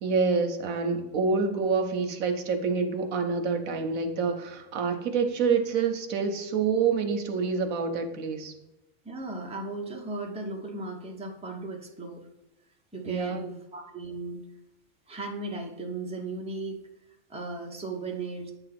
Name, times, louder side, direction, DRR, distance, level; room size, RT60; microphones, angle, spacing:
voice 1, 0.0-8.5 13.1-13.6, right 5 dB, 75° right, 6 dB, 1.2 m, -27 dB
voice 2, 9.0-12.3 12.9-14.4 15.1-16.8 17.3-18.5, right 3 dB, 5° right, 0 dB, 0.9 m, -36 dB
8.5 x 3.0 x 5.8 m, 0.96 s
omnidirectional pair, 1.4 m